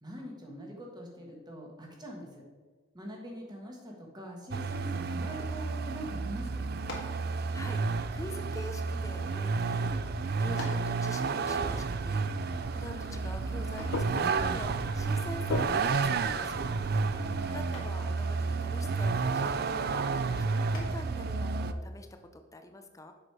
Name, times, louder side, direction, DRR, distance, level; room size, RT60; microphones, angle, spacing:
voice 1, 0.0-2.4 2.9-6.8 17.0-17.5, equal, 20° right, 0 dB, 1.4 m, -44 dB
Vehicle, 4.5-21.7, right 4 dB, 50° right, 0.4 m, -31 dB
sound 1, 6.8-7.3 8.2-9.4 10.0-10.1 10.6-11.0 13.8-14.1 16.0-16.4 16.8-17.1 17.7-18.1 20.7-21.2, left 1 dB, 60° left, 1.8 m, -44 dB
voice 2, 7.3-7.8 8.1-16.6 17.0-22.1 22.3-23.1, left 1 dB, 15° left, 6 dB, 0.6 m, -45 dB
sound 2, 12.5-17.6, left 3 dB, 75° left, 0.6 m, -41 dB
7.8 x 6.1 x 4.7 m, 1.3 s
head